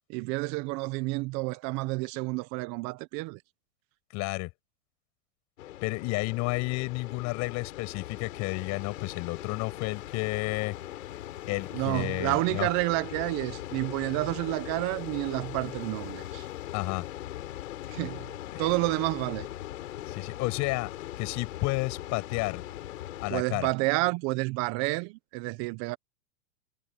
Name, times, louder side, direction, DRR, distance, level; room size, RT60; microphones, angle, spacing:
voice 1, 0.1-3.4 11.7-16.5 17.9-18.3 18.6-19.5 23.3-26.0, right 24 dB, 45° right, 1.2 m, -30 dB
voice 2, 4.1-4.5 5.8-10.8 11.5-12.7 16.7-17.1 18.5-18.7 20.1-20.9 21.2-22.6 23.2-23.7, left 24 dB, 45° left, 6.3 m, -31 dB
sound 1, 5.6-23.3, left 13 dB, 75° left, 4.4 m, -40 dB
hypercardioid pair, 125°, 39 cm